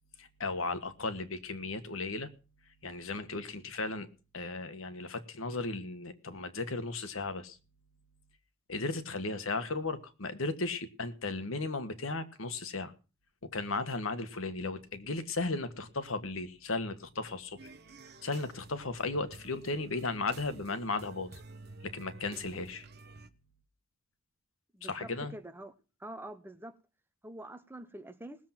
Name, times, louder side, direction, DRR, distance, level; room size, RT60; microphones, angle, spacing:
voice 1, 0.2-2.3 2.8-4.1 4.3-7.6 8.7-12.9 13.5-17.7 18.2-21.4 21.8-22.8 24.9-25.3, left 3 dB, 90° left, 1.5 m, -35 dB
sound 1, 17.6-23.3, right 3 dB, 55° right, 1.1 m, -51 dB
voice 2, 24.7-25.7 26.0-26.7 27.2-28.4, right 1 dB, 10° right, 1.0 m, -45 dB
19.0 x 7.5 x 5.8 m
head